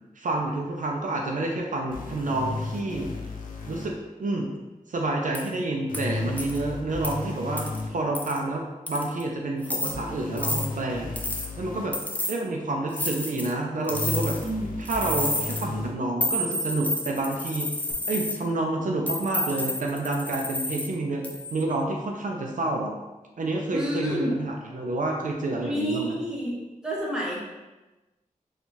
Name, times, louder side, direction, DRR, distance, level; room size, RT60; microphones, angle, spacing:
voice 1, 0.2-3.1 3.7-3.9 4.2-4.5 4.9-7.6 7.9-8.6 8.9-11.1 11.6-12.0 12.3-14.3 14.8-17.7 18.1-21.3 21.5-22.9 23.4-26.2, right 2 dB, 70° right, 0 dB, 0.5 m, -28 dB
sound 1, 1.9-3.9 5.9-7.9 9.9-11.9 13.9-15.9 17.9-18.0, left 3 dB, 80° left, 0.5 m, -34 dB
sound 2, 5.3-5.5 5.9-6.0 6.4-6.6 7.0-7.1 7.6-7.8 8.1-8.4 8.9-9.2 9.6-9.9 10.4-10.7 11.2-11.5 11.9-12.4 12.9-13.5 13.9-14.5 14.8-15.6 16.2-18.4 19.1-20.9 21.2-21.6, left 1 dB, 10° left, 0.4 m, -30 dB
voice 2, 14.4-14.8 23.7-24.3 25.6-26.6 26.8-27.4, equal, 5° right, -5 dB, 1.0 m, -29 dB
4.4 x 2.4 x 2.7 m, 1.1 s
wide cardioid pair, 95°, 14 cm